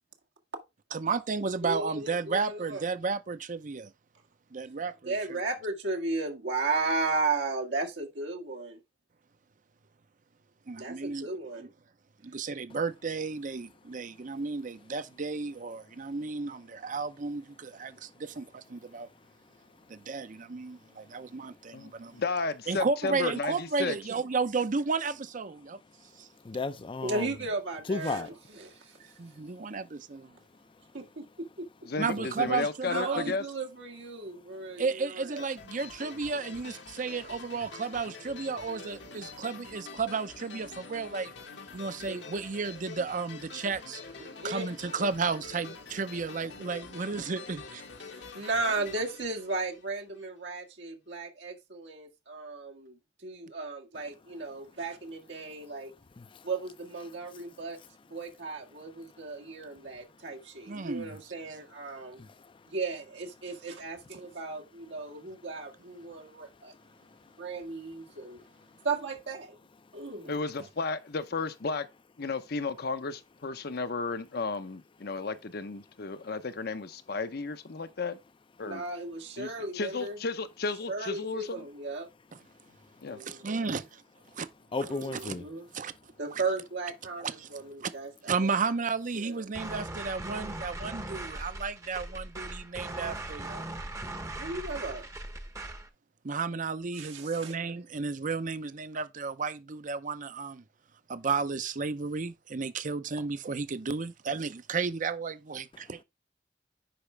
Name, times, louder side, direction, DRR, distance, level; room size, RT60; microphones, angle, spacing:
voice 1, 0.9-3.9 4.5-5.1 10.7-11.3 11.6-11.7 12.2-19.1 19.9-22.2 22.7-25.8 26.2-26.3 29.2-30.4 32.0-33.2 34.8-41.3 41.7-44.0 44.4-47.8 60.7-61.2 83.4-83.8 84.4-84.5 84.8-84.9 85.1-85.3 85.7-85.9 86.3-86.4 87.2-87.5 87.8-87.9 88.3-93.7 96.2-100.6 101.1-106.0, right 4 dB, 45° right, 0.7 m, -33 dB
voice 2, 1.6-2.9 5.0-8.8 10.8-11.7 27.0-29.0 30.9-31.7 32.9-35.5 42.1-42.2 44.2-44.6 48.1-55.9 56.4-57.8 58.0-62.2 62.6-66.7 67.4-68.4 68.8-69.6 69.9-70.4 78.6-80.2 80.9-82.1 83.1-83.8 84.9-85.7 86.2-88.6 89.1-89.4 94.4-95.1 96.9-97.5, right 3 dB, 85° right, 1.9 m, -35 dB
voice 3, 21.7-24.0 31.9-33.4 70.3-71.9 72.2-78.2 78.6-78.8 79.4-79.5 79.7-81.6 83.0-83.2, left 4 dB, 60° left, 0.8 m, -33 dB
voice 4, 26.4-27.3 27.9-28.3 56.2-56.4 62.2-62.3 84.7-85.4, left 3 dB, 30° left, 0.5 m, -33 dB
sound 1, 35.4-50.2, left 4 dB, 75° left, 1.4 m, -46 dB
sound 2, 89.5-95.9, right 2 dB, 15° right, 0.8 m, -39 dB
10.0 x 5.0 x 3.3 m
head